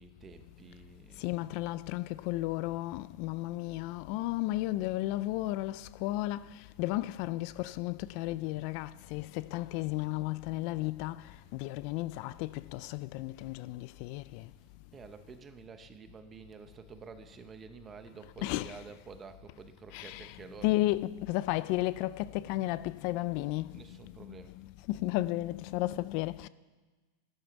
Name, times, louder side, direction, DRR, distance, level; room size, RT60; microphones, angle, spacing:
voice 1, 0.0-1.4 14.9-20.8 23.7-24.7, right 5 dB, 20° right, 0.8 m, -50 dB
voice 2, 1.2-14.5 18.4-18.8 19.9-26.5, left 17 dB, 50° left, 0.3 m, -34 dB
12.0 x 11.0 x 7.1 m
supercardioid pair, 155°, 0 cm